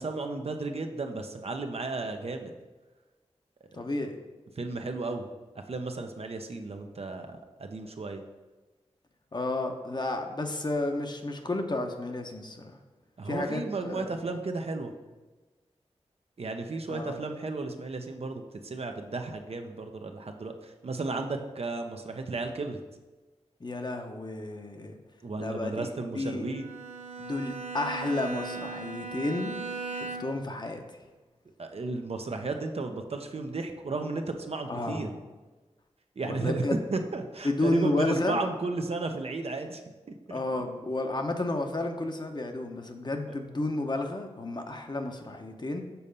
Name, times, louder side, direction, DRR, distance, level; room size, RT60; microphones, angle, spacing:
voice 1, 0.0-2.5 3.7-3.8 4.6-5.2 5.5-8.2 13.2-14.9 16.4-22.8 25.2-26.6 31.6-35.1 36.2-39.8 40.3-40.6 43.3-43.4, right 3 dB, 60° right, 5 dB, 0.7 m, -34 dB
voice 2, 3.7-4.2 9.3-12.8 13.3-14.1 16.9-17.1 23.6-25.0 25.4-26.5 27.2-29.6 29.9-30.8 34.7-35.2 36.2-36.8 37.4-38.4 40.3-45.8, left 2 dB, 40° left, 4 dB, 0.9 m, -31 dB
Bowed string instrument, 26.5-30.5, right 4 dB, 75° right, 1.1 m, -38 dB
7.0 x 4.2 x 5.3 m, 1.2 s
cardioid pair, 50°, 12 cm